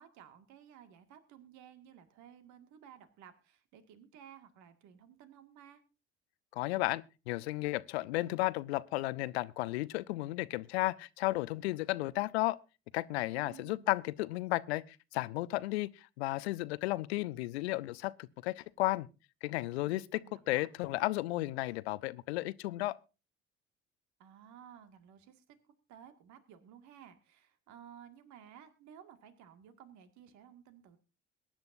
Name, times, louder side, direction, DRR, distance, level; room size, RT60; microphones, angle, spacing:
voice 1, 0.0-5.8 13.4-13.9 19.8-20.7 24.2-25.6 25.9-31.0, right 9 dB, 60° right, 2.0 m, -56 dB
voice 2, 6.5-12.6 12.9-19.1 19.4-20.2 20.5-23.0, left 19 dB, 75° left, 0.7 m, -34 dB
22.5 x 10.5 x 2.6 m
figure-of-eight pair, 55°, 33 cm